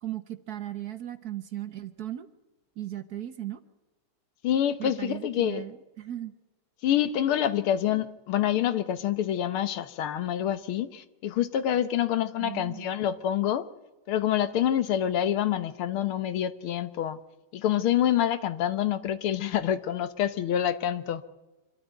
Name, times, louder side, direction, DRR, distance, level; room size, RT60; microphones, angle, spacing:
voice 1, 0.0-2.3 2.8-3.6 4.8-6.3 12.4-12.9, right 13 dB, 55° right, 1.3 m, -37 dB
voice 2, 4.4-5.6 6.8-13.7 14.1-17.2 17.5-21.2, left 10 dB, 85° left, 1.9 m, -27 dB
25.0 x 13.5 x 9.2 m
omnidirectional pair, 2.3 m